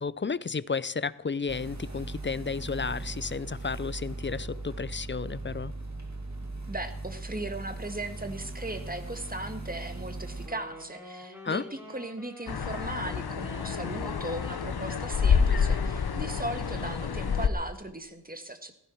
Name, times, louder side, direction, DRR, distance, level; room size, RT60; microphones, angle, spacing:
voice 1, 0.0-5.7 11.4-11.7, left 5 dB, 30° left, 0.5 m, -32 dB
sound 1, 1.5-10.5, right 2 dB, 40° right, 2.4 m, -39 dB
voice 2, 6.7-18.8, right 1 dB, 20° right, 1.7 m, -38 dB
Wind instrument woodwind instrument, 10.5-17.6, left 1 dB, 5° right, 6.0 m, -47 dB
sound 2, 12.5-17.5, left 6 dB, 65° left, 0.9 m, -28 dB
15.5 x 15.0 x 4.5 m
wide cardioid pair, 55°, 41 cm